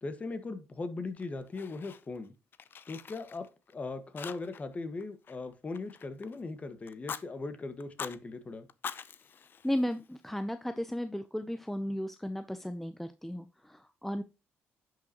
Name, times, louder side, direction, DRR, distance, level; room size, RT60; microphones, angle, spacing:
voice 1, 0.0-2.3 2.9-3.4 3.7-8.7, left 3 dB, 30° left, 9 dB, 1.6 m, -39 dB
Fire, 1.2-2.3 2.5-3.7 4.2-4.7 5.0-6.4 6.9-7.2 7.8-8.2 8.7-10.3, left 7 dB, 50° left, 0.7 m, -44 dB
voice 2, 9.6-14.2, equal, 5° left, 9 dB, 0.6 m, -35 dB
10.5 x 6.2 x 3.0 m, 0.28 s
cardioid pair, 95°, 4 cm